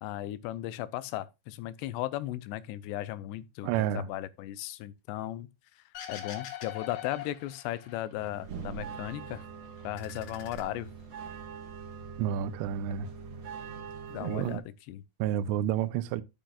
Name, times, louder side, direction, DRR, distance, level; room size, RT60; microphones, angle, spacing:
voice 1, 0.0-5.5 6.1-9.4 9.8-10.9 14.1-15.0, left 14 dB, 90° left, 2.8 m, -36 dB
voice 2, 3.6-4.1 12.2-13.1 14.2-14.6 15.2-16.2, right 10 dB, 85° right, 2.8 m, -30 dB
sound 1, 6.0-8.3 8.6-9.5 9.8-11.3, left 11 dB, 70° left, 3.5 m, -43 dB
sound 2, 8.2-14.6, right 6 dB, 65° right, 1.3 m, -43 dB
11.5 x 7.7 x 2.4 m
omnidirectional pair, 4.9 m